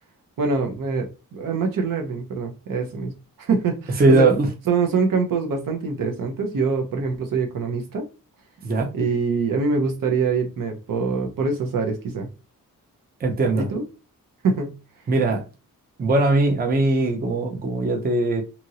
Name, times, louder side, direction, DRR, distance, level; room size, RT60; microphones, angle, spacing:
voice 1, 0.4-3.1 3.4-4.3 4.7-8.1 8.9-12.3 13.5-13.8 14.4-14.8, right 4 dB, 70° right, 0.8 m, -24 dB
voice 2, 4.0-4.5 8.6-8.9 13.2-13.6 15.1-15.4 16.0-18.4, right 2 dB, 25° right, 0.5 m, -20 dB
2.9 x 2.5 x 2.7 m
wide cardioid pair, 160°, 34 cm